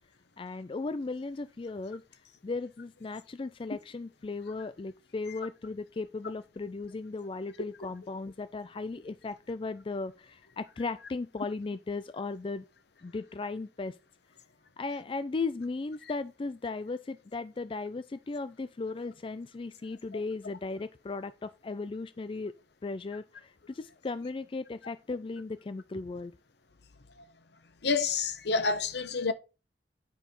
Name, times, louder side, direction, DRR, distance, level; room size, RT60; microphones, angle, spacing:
voice 1, 0.4-2.0 2.4-12.6 13.0-14.0 14.8-22.5 22.8-26.3, left 3 dB, 30° left, 0.4 m, -36 dB
voice 2, 27.8-29.3, left 4 dB, 70° left, 0.8 m, -28 dB
10.0 x 4.6 x 5.2 m
head